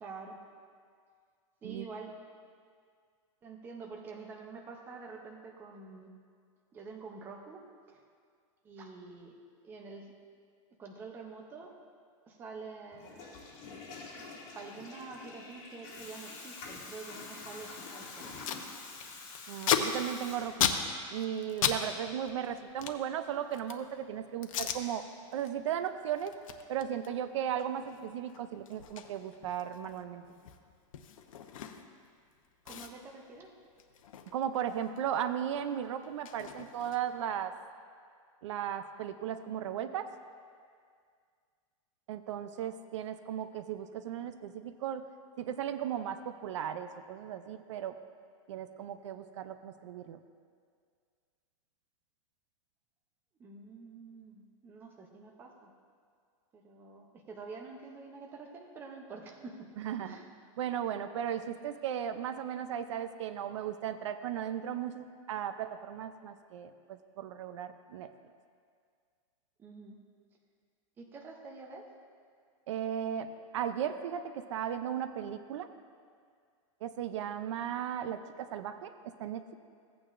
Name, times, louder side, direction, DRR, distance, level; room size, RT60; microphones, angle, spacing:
voice 1, 0.0-0.4 1.6-2.1 3.4-6.1 6.7-7.6 7.9-8.0 8.6-9.3 9.6-10.1 10.8-11.7 12.3-13.2 14.5-18.6 32.6-33.5 53.4-55.7 56.5-59.7 60.0-60.3 69.6-70.0 71.0-71.8, right 4 dB, 10° right, 1 dB, 0.6 m, -47 dB
Water tap faucet / Toilet flush, 12.9-20.9, left 4 dB, 45° left, 2.8 m, -47 dB
Packing tape duct tape, 17.9-18.0 18.2-18.6 18.9-21.8 22.1-23.9 24.4-24.8 25.3-25.5 25.8-32.1 32.3-32.4 32.6-35.0 35.3-37.3, left 8 dB, 90° left, 0.8 m, -36 dB
voice 2, 19.5-20.7 21.1-25.0 25.3-26.3 26.7-30.2 34.3-37.5 38.4-40.1 42.1-45.1 45.4-47.9 48.5-50.2 59.8-60.2 60.6-68.1 72.7-75.7 76.8-79.5, right 9 dB, 65° right, 10 dB, 0.5 m, -36 dB
16.0 x 8.7 x 2.5 m, 2.1 s
supercardioid pair, 175°, 17 cm